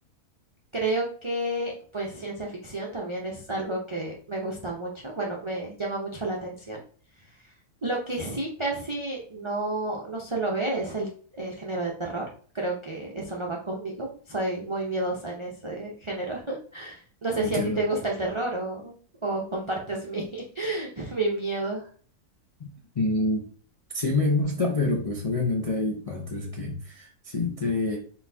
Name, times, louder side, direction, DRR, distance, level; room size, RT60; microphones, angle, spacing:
voice 1, 0.7-6.8 7.8-11.1 11.3-12.2 12.5-18.9 19.2-21.9, right 2 dB, 35° right, -2 dB, 0.5 m, -30 dB
voice 2, 17.4-17.8 22.6-22.7 22.9-23.5 23.9-28.0, left 2 dB, 60° left, -1 dB, 0.3 m, -27 dB
4.1 x 4.1 x 2.7 m, 0.44 s
omnidirectional pair, 1.6 m